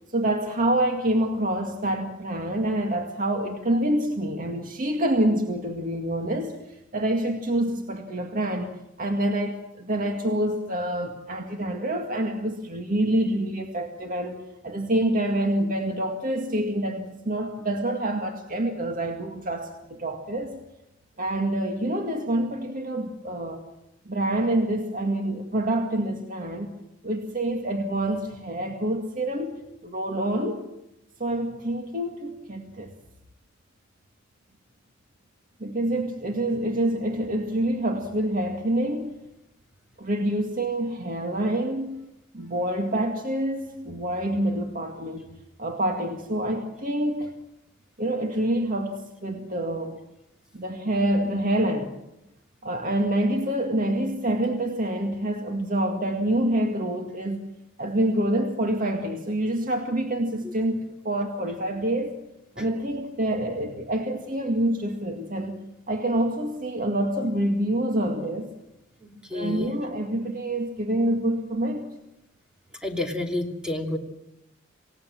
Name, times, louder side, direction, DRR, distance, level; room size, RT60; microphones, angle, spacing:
voice 1, 0.1-6.6 6.9-8.7 9.0-20.6 21.2-23.6 24.1-26.8 27.0-29.6 29.8-30.7 31.2-32.9 35.6-39.1 40.0-42.1 42.3-45.3 45.6-47.3 48.0-50.0 50.5-51.9 52.6-57.5 57.8-62.1 62.6-65.6 65.9-68.5 69.3-71.9, right 1 dB, 45° right, 4 dB, 2.0 m, -27 dB
voice 2, 69.0-69.7 72.8-74.0, left 2 dB, 5° right, 2 dB, 2.9 m, -30 dB
28.0 x 17.5 x 7.6 m, 0.90 s
head